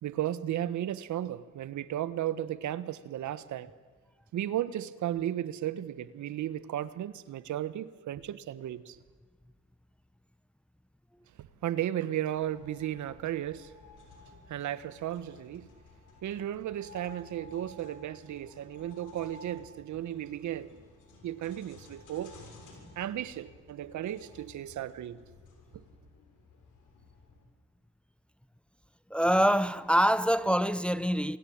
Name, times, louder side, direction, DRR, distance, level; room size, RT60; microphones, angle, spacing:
voice 1, 0.0-3.7 4.3-9.0 11.4-13.7 14.5-15.7 16.2-20.7 21.2-22.3 23.0-25.2, right 12 dB, 70° right, 1.3 m, -34 dB
sound 1, 12.4-27.5, left 3 dB, 80° left, 6.7 m, -54 dB
voice 2, 29.1-31.4, equal, 5° left, 0.8 m, -25 dB
28.0 x 23.5 x 8.8 m
cardioid pair, 90°, 30 cm